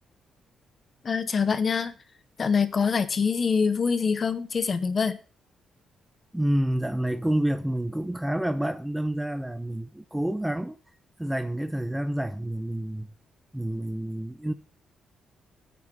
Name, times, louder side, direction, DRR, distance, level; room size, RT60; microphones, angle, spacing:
voice 1, 1.0-1.9 2.4-5.2, left 5 dB, 30° left, 0.8 m, -25 dB
voice 2, 6.3-10.8 11.2-13.1 13.5-14.5, right 1 dB, 5° right, 0.4 m, -28 dB
8.8 x 6.5 x 7.4 m
cardioid pair, 165°, 0 cm